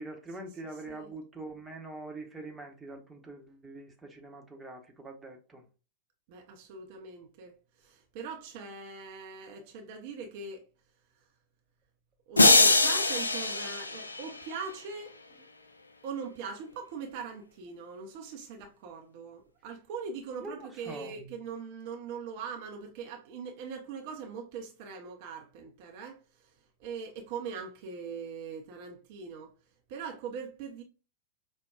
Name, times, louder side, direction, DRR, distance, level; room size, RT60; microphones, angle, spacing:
voice 1, 0.0-5.6 20.4-21.2, right 2 dB, 10° right, 0.9 m, -44 dB
voice 2, 6.3-10.6 12.3-15.2 16.0-26.5 26.8-29.5 29.9-30.8, right 5 dB, 50° right, 0.6 m, -41 dB
sound 1, 12.4-14.6, left 2 dB, 80° left, 0.4 m, -23 dB
5.2 x 2.2 x 2.3 m
figure-of-eight pair, 90°, 0 cm